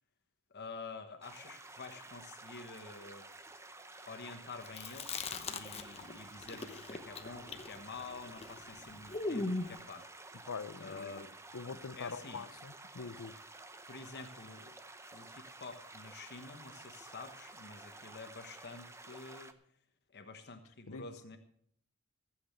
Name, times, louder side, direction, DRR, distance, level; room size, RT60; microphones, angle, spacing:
voice 1, 0.5-3.2 4.1-10.1 10.8-11.4 12.0-12.5 13.9-14.7 15.1-19.5 20.1-21.4, left 4 dB, 50° left, 1.2 m, -48 dB
sound 1, 1.2-19.5, right 2 dB, 15° right, 0.7 m, -52 dB
Chewing mastication, 4.7-6.1 6.4-9.8, left 3 dB, 30° left, 0.9 m, -39 dB
voice 2, 10.5-11.3 11.5-13.4 20.9-21.1, left 5 dB, 65° left, 0.7 m, -44 dB
15.0 x 7.9 x 6.8 m
head